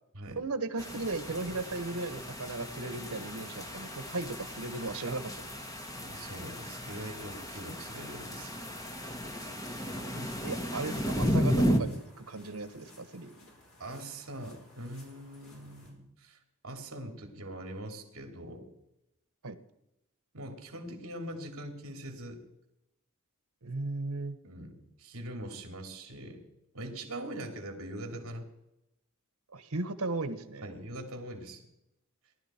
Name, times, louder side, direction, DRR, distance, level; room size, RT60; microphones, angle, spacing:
voice 1, 0.4-5.5 10.1-13.3 19.4-19.6 23.6-24.4 29.5-30.7, right 3 dB, 85° right, 11 dB, 1.3 m, -36 dB
sound 1, 0.8-11.8, equal, 15° left, 1.4 m, -34 dB
voice 2, 6.0-8.6 13.8-16.4 16.6-18.7 20.3-22.4 24.4-26.4 26.7-28.5 30.6-31.6, right 1 dB, 65° right, 4 dB, 2.8 m, -42 dB
sound 2, 10.4-15.9, left 1 dB, 65° left, 5.0 m, -58 dB
18.0 x 12.0 x 4.4 m, 0.85 s
head